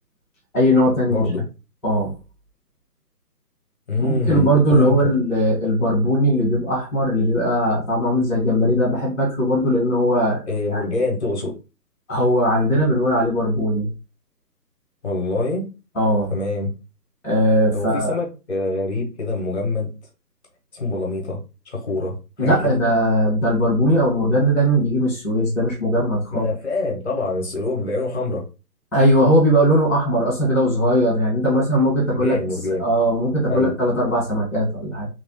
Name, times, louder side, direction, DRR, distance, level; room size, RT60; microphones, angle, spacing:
voice 1, 0.5-1.3 1.8-2.1 4.0-10.4 10.7-10.8 12.1-13.9 15.9-16.3 17.2-18.1 22.4-26.5 28.9-32.5 32.8-35.1, equal, ahead, 0.6 m, -19 dB
voice 2, 1.1-1.4 3.9-5.1 10.5-11.5 15.0-15.7 16.3-16.7 17.7-19.9 20.7-21.4 21.7-22.8 26.3-28.4 31.4-31.6 32.1-32.8 33.5-33.7, left 2 dB, 45° left, 0.9 m, -25 dB
3.0 x 2.3 x 2.9 m
hypercardioid pair, 165°, 48 cm